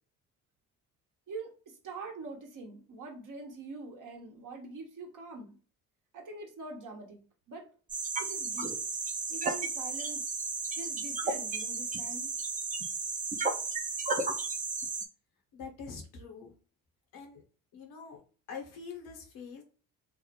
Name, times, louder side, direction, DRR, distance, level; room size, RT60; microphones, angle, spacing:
voice 1, 1.3-5.5 6.1-7.2 7.5-7.7 8.2-8.8 9.3-10.3 10.7-12.3, right 3 dB, 55° right, 2 dB, 0.9 m, -44 dB
sound 1, 7.9-15.1, right 4 dB, 20° right, 0.5 m, -33 dB
voice 2, 15.5-16.5 17.1-17.4 17.7-18.2 18.5-19.6, left 5 dB, 75° left, 2 dB, 0.9 m, -44 dB
2.5 x 2.0 x 2.8 m, 0.39 s
supercardioid pair, 55°, 37 cm